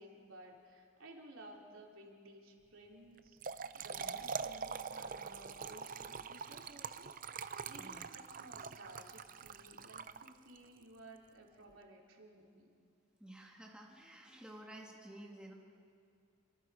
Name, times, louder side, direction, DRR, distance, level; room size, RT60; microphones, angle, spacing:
voice 1, 0.0-12.7, right 1 dB, 75° right, 0 dB, 3.2 m, -56 dB
Trickle dribble / Fill (with liquid), 3.2-10.6, right 6 dB, 40° right, 0.6 m, -44 dB
voice 2, 13.2-15.5, right 1 dB, 5° right, -2 dB, 2.1 m, -52 dB
28.5 x 24.0 x 4.9 m, 2.3 s
head